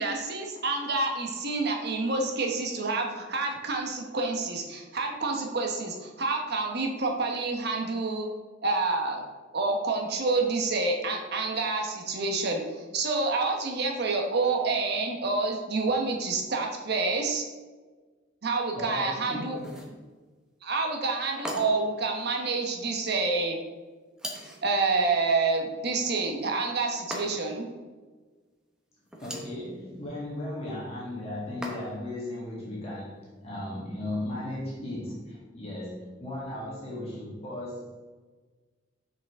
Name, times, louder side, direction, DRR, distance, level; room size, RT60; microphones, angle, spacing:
voice 1, 0.0-8.3 8.6-9.2 9.5-17.4 18.4-19.6 20.6-23.6 24.6-27.7, right 3 dB, 60° right, 2 dB, 1.1 m, -28 dB
voice 2, 18.7-19.7 29.2-38.2, left 1 dB, 30° left, -6 dB, 1.8 m, -36 dB
sound 1, 19.6-20.0 21.4-22.0 24.2-24.7 27.1-27.6 29.1-29.6 31.6-32.1, equal, 5° right, 1.0 m, -38 dB
6.3 x 6.2 x 3.6 m, 1.3 s
head